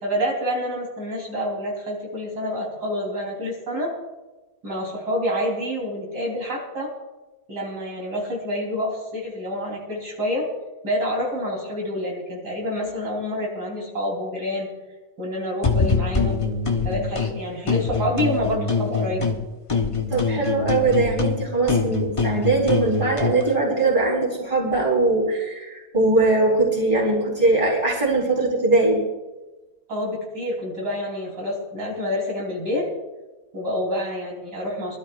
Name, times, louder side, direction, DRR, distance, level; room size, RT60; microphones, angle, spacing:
voice 1, 0.0-3.9 4.6-6.9 7.5-10.5 10.8-14.7 15.2-16.4 16.8-19.4 29.9-32.9 33.5-35.0, equal, 75° right, -2 dB, 4.1 m, -27 dB
sound 1, 15.6-17.3 17.7-19.4 19.7-23.4, left 4 dB, 25° left, 0.8 m, -24 dB
voice 2, 20.1-29.0, right 2 dB, 20° right, -4 dB, 4.1 m, -21 dB
24.5 x 12.5 x 2.5 m, 1.1 s
omnidirectional pair, 1.8 m